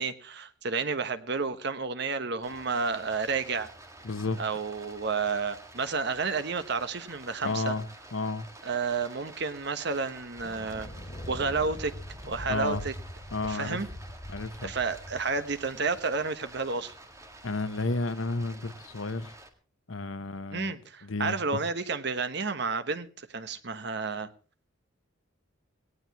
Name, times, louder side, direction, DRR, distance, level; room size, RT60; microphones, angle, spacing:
voice 1, 0.0-3.7 4.4-7.7 8.6-10.9 11.3-11.9 12.2-12.9 13.4-13.9 14.6-16.9 20.5-24.3, right 4 dB, 60° right, 1.2 m, -31 dB
Stream, 2.4-19.5, right 2 dB, 15° right, 1.9 m, -50 dB
voice 2, 4.0-4.4 7.4-7.9 8.1-8.5 12.5-12.8 13.3-13.8 14.3-14.7 17.4-19.3 19.9-21.6, left 3 dB, 90° left, 1.0 m, -32 dB
Thunder, 10.2-16.9, equal, 30° left, 2.9 m, -43 dB
18.5 x 18.0 x 3.0 m
head